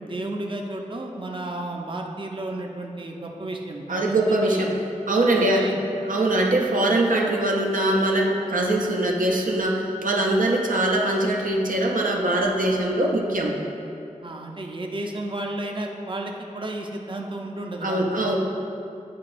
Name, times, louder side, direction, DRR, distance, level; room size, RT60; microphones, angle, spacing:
voice 1, 0.0-4.7 5.3-5.8 14.2-18.4, right 1 dB, 40° right, 1 dB, 0.5 m, -33 dB
voice 2, 3.9-4.8 5.1-5.7 6.0-13.6 17.8-18.4, right 1 dB, 80° right, -1 dB, 0.6 m, -22 dB
8.5 x 4.7 x 2.5 m, 2.6 s
wide cardioid pair, 45°, 14 cm